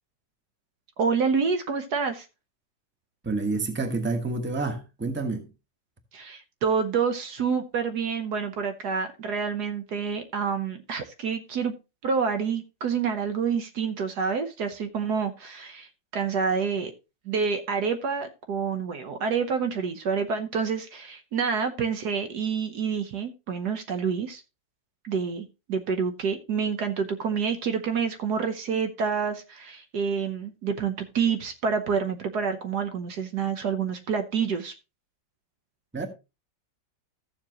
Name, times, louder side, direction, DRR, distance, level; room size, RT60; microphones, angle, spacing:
voice 1, 1.0-2.3 6.1-11.7 12.0-16.9 17.2-24.4 25.0-34.7, right 6 dB, 65° right, 1.4 m, -28 dB
voice 2, 3.2-5.5 35.9-36.1, right 3 dB, 5° right, 1.1 m, -28 dB
14.5 x 7.2 x 2.9 m
omnidirectional pair, 2.0 m